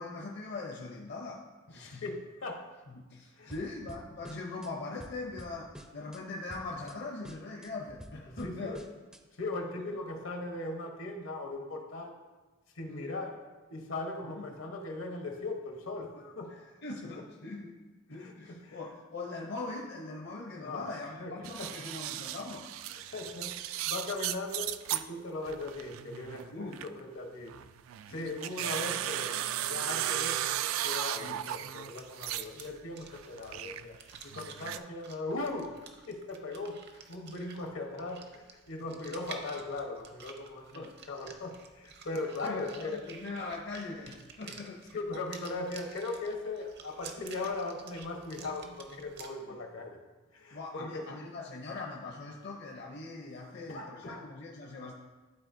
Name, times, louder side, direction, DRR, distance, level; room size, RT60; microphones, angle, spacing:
voice 1, 0.0-1.4 1.7-2.0 2.9-8.8 12.9-13.1 14.2-14.5 16.5-17.8 18.1-23.0 26.5-26.8 28.1-28.3 31.2-31.4 38.9-39.2 40.7-40.9 42.4-44.8 49.4-49.6 50.5-54.9, left 3 dB, 55° left, -1 dB, 0.7 m, -41 dB
voice 2, 1.7-2.7 3.3-3.5 8.3-8.8 9.3-12.2 12.7-13.4 13.7-16.5 18.2-18.8 20.6-20.9 21.2-21.7 22.9-27.5 28.1-34.0 34.2-35.8 36.1-43.0 44.5-44.6 44.9-50.0 50.3-51.0 53.7-54.3, left 2 dB, 75° left, 2 dB, 1.0 m, -39 dB
sound 1, 3.5-4.7 5.0-6.2 6.5-7.0 7.2-9.2, equal, 5° right, 0.4 m, -49 dB
sound 2, 21.4-25.0 25.4-27.0 27.5-32.7 33.0-34.8, right 12 dB, 80° right, 0.3 m, -36 dB
sound 3, 31.9-49.3, right 5 dB, 55° right, 0.7 m, -52 dB
12.0 x 4.1 x 2.6 m, 1.2 s
head